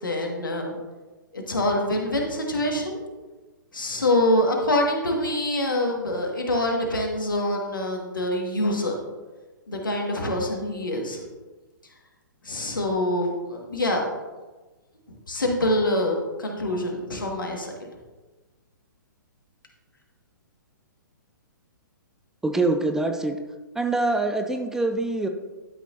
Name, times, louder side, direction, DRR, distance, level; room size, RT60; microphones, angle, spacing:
voice 1, 0.0-0.8 1.3-3.0 3.7-9.0 9.7-11.2 12.4-14.0 15.3-17.9, left 1 dB, 75° left, 1 dB, 1.9 m, -25 dB
voice 2, 22.4-23.4 23.8-25.3, right 2 dB, 5° right, 6 dB, 0.4 m, -24 dB
12.0 x 6.1 x 2.7 m, 1.2 s
figure-of-eight pair, 120°, 11 cm